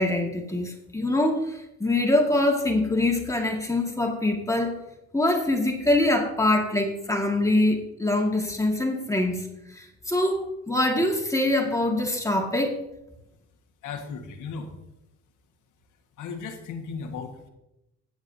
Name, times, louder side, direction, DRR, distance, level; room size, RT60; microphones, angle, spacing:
voice 1, 0.0-4.8 5.1-12.8, left 1 dB, 10° left, 1 dB, 1.9 m, -24 dB
voice 2, 13.8-14.7 16.2-17.5, left 5 dB, 85° left, 3 dB, 1.6 m, -36 dB
21.5 x 8.0 x 2.8 m, 0.90 s
cardioid pair, 90°, 30 cm